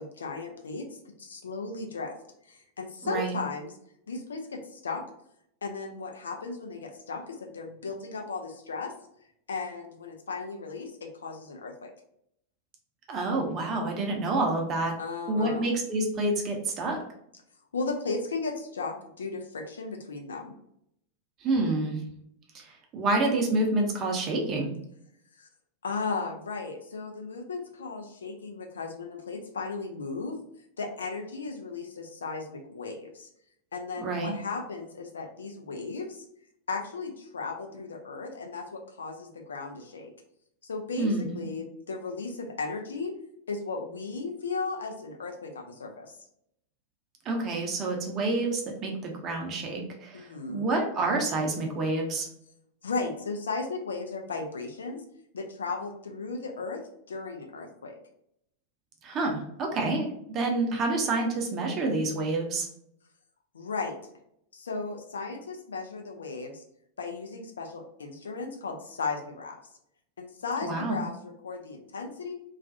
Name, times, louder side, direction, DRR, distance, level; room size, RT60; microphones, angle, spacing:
voice 1, 0.0-2.1 2.5-3.7 4.1-5.0 5.6-8.9 9.5-11.9 15.0-15.7 17.7-20.5 25.4-25.5 25.8-30.4 30.8-33.3 33.7-36.2 36.7-40.1 40.6-43.1 43.5-46.2 50.1-50.7 52.8-55.0 55.3-56.8 57.1-58.0 63.5-64.0 64.5-66.6 67.0-69.6 70.2-72.3, left 4 dB, 70° left, 3 dB, 0.4 m, -35 dB
voice 2, 3.0-3.3 13.1-15.0 15.3-17.0 21.4-22.0 22.5-24.8 34.0-34.3 41.0-41.4 47.2-52.3 59.0-62.7 70.6-71.0, right 2 dB, 30° right, 1 dB, 0.6 m, -28 dB
2.3 x 2.2 x 2.6 m, 0.73 s
figure-of-eight pair, 90°, 0 cm